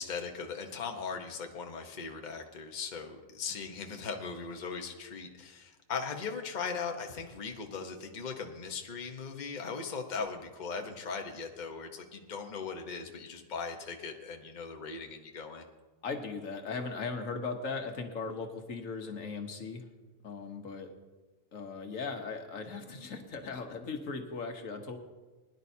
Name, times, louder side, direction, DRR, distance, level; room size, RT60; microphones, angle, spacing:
voice 1, 0.0-15.6, left 5 dB, 35° left, 3 dB, 1.1 m, -39 dB
voice 2, 16.0-19.8 20.2-20.9 21.5-25.0, left 4 dB, 75° left, 4 dB, 1.5 m, -38 dB
21.0 x 11.0 x 2.8 m, 1.2 s
omnidirectional pair, 1.4 m